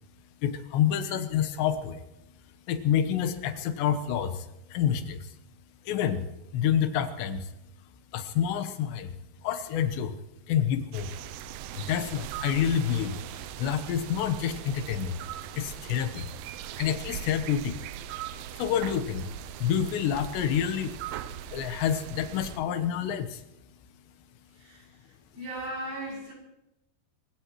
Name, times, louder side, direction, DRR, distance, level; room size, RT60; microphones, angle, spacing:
voice 1, 0.4-2.0 2.7-5.3 5.9-6.3 6.5-7.5 8.1-9.2 9.4-10.1 10.5-11.1 11.7-15.2 15.5-16.3 16.8-17.8 18.6-19.3 19.6-20.9 21.5-23.4, left 9 dB, 85° left, 9 dB, 3.4 m, -28 dB
sound 1, 10.9-22.6, right 10 dB, 85° right, 2.1 m, -40 dB
voice 2, 24.5-25.0 25.3-26.3, right 1 dB, 45° right, -3 dB, 7.5 m, -37 dB
27.5 x 16.5 x 3.1 m, 0.90 s
omnidirectional pair, 4.9 m